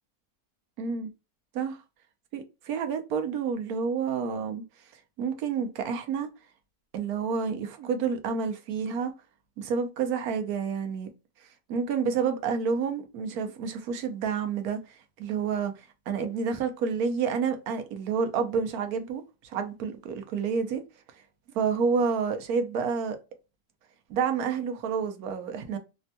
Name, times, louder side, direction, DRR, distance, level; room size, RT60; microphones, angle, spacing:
voice 1, 0.8-1.1 1.5-1.8 2.3-4.6 5.2-6.3 6.9-9.1 9.6-11.1 11.7-14.8 15.2-15.7 16.1-20.8 21.5-23.2 24.1-25.8, right 6 dB, 85° right, 1.2 m, -29 dB
3.5 x 2.2 x 2.7 m
omnidirectional pair, 1.5 m